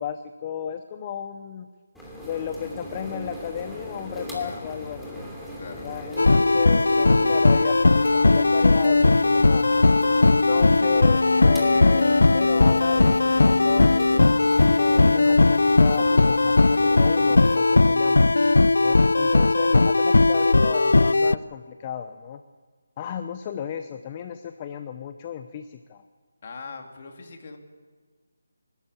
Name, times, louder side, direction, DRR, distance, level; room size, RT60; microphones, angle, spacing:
voice 1, 0.0-1.7 2.2-5.2 5.8-9.7 10.3-14.0 14.8-18.3 18.8-22.4 23.0-26.0, left 8 dB, 25° left, 9 dB, 0.8 m, -34 dB
sound 1, 1.9-17.6, equal, ahead, 2.8 m, -38 dB
voice 2, 4.4-4.7 5.5-5.9 26.4-27.6, left 4 dB, 45° left, 3 dB, 2.9 m, -41 dB
sound 2, 6.2-21.4, left 3 dB, 80° left, 0.5 m, -18 dB
27.0 x 13.0 x 8.5 m, 1.5 s
figure-of-eight pair, 165°, 0 cm